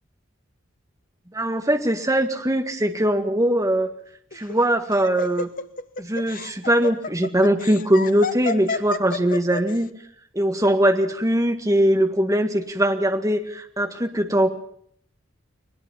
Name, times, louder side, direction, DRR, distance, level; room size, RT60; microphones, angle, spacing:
voice 1, 1.3-3.9 4.3-5.5 6.0-9.9 10.3-14.5, right 1 dB, 15° right, 6 dB, 1.9 m, -21 dB
Laughter, 4.3-9.8, left 4 dB, 45° left, 1.0 m, -30 dB
21.0 x 20.5 x 7.3 m, 0.65 s
head